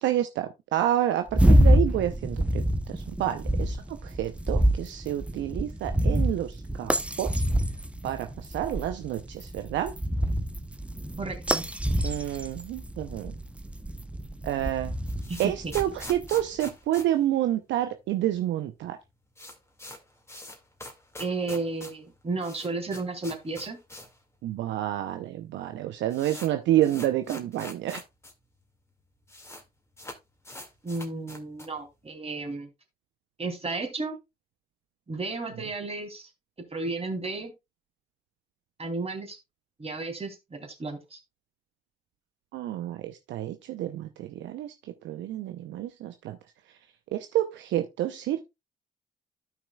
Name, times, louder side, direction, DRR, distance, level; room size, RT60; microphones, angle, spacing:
voice 1, 0.0-2.6 2.9-6.9 7.2-7.4 8.0-9.9 12.0-13.3 14.4-15.0 15.4-19.0 24.4-28.0 42.5-44.7 45.0-46.4 47.1-48.4, right 12 dB, 70° right, 0.7 m, -29 dB
sound 1, 1.3-16.5, equal, 5° right, 0.8 m, -26 dB
voice 2, 11.2-11.7 15.3-15.5 21.2-23.8 30.8-32.7 33.4-34.2 35.1-36.3 36.7-37.5 38.8-39.4 39.8-41.2, right 3 dB, 30° right, 3.0 m, -33 dB
sound 2, 15.0-18.1 18.3-18.4 18.7-18.8 19.0-24.2 24.5-24.6 25.3-25.4 25.6-28.3 28.6-28.7 28.9-29.6 29.9-31.8, left 1 dB, 15° left, 2.1 m, -44 dB
12.5 x 5.9 x 2.3 m
hypercardioid pair, 50°, 20 cm